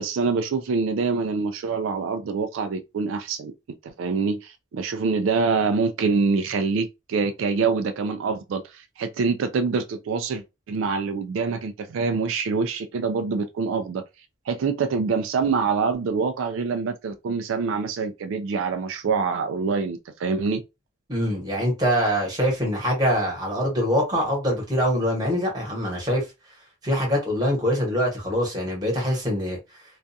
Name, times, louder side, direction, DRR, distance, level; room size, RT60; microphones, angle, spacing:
voice 1, 0.0-3.5 3.8-14.0 14.5-20.6, right 4 dB, 85° right, 0.3 m, -25 dB
voice 2, 21.1-26.2 26.8-29.6, equal, 20° right, 1.1 m, -24 dB
2.4 x 2.3 x 2.6 m
head